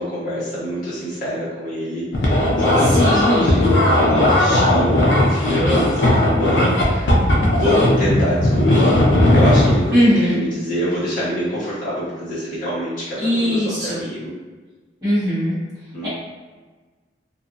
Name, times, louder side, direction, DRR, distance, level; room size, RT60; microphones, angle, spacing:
voice 1, 0.0-7.1 7.5-8.9 9.3-14.3 15.9-16.1, equal, 50° left, -10 dB, 1.4 m, -25 dB
sound 1, 2.1-9.8, left 1 dB, 85° left, 0.6 m, -16 dB
voice 2, 3.0-3.5 9.9-10.4 13.2-14.0 15.0-15.5 16.0-16.1, equal, 20° right, -15 dB, 0.9 m, -19 dB
2.7 x 2.4 x 2.5 m, 1.3 s
head